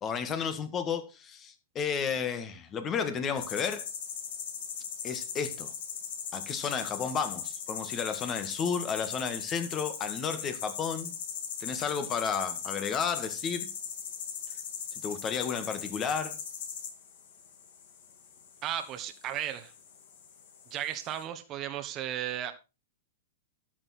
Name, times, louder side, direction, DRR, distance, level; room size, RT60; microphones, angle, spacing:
voice 1, 0.0-3.9 5.0-5.7 6.3-11.2 11.6-13.7 15.0-16.4, left 6 dB, 25° left, 1.8 m, -32 dB
sound 1, 3.4-21.2, left 7 dB, 65° left, 2.9 m, -39 dB
voice 2, 18.6-19.7 20.7-22.5, right 11 dB, 35° right, 1.3 m, -35 dB
12.0 x 7.3 x 4.3 m
hypercardioid pair, 125°, 0 cm